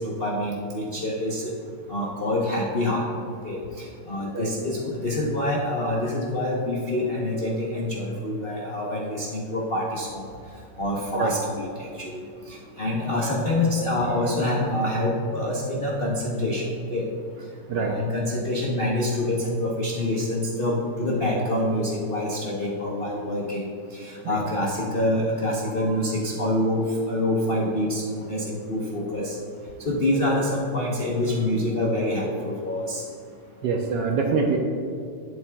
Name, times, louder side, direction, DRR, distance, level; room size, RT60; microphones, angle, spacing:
voice 1, 0.0-1.4 1.9-3.1 3.4-10.2 10.8-16.6 16.9-17.1 17.8-23.6 23.9-29.3 29.8-33.0, left 1 dB, 60° left, -4 dB, 0.5 m, -26 dB
voice 2, 33.6-34.6, right 4 dB, 70° right, 2 dB, 1.1 m, -24 dB
11.5 x 8.5 x 2.2 m, 2.4 s
omnidirectional pair, 2.4 m